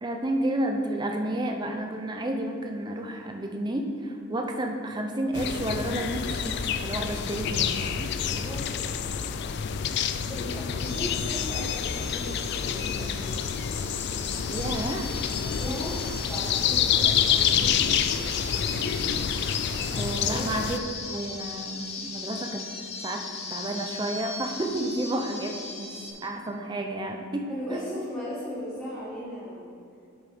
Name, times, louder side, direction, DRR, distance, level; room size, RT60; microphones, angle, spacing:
voice 1, 0.0-8.1 14.5-15.1 19.9-22.6 23.0-23.2 23.5-25.9 26.2-27.9, right 1 dB, 20° right, 3 dB, 0.6 m, -31 dB
sound 1, 5.3-20.8, left 8 dB, 55° left, 0.3 m, -28 dB
voice 2, 8.3-9.0 10.3-13.5 15.4-18.7 19.8-20.5 27.5-29.7, left 1 dB, 5° left, -11 dB, 1.6 m, -38 dB
sound 2, 10.8-26.1, left 4 dB, 30° left, 0.7 m, -38 dB
8.4 x 6.3 x 3.5 m, 2.6 s
head